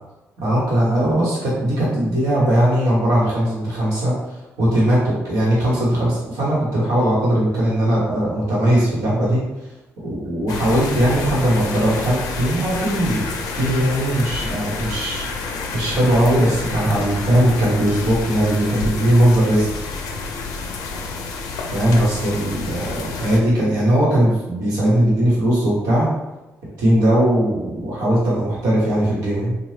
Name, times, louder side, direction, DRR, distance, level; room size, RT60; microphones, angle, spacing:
voice 1, 0.4-9.4 10.0-15.3 15.7-19.7 21.7-26.1 26.8-29.5, right 1 dB, 85° right, -6 dB, 1.0 m, -19 dB
sound 1, 10.5-23.4, left 4 dB, 85° left, 0.4 m, -29 dB
2.8 x 2.2 x 3.2 m, 1.0 s
supercardioid pair, 70°, 6 cm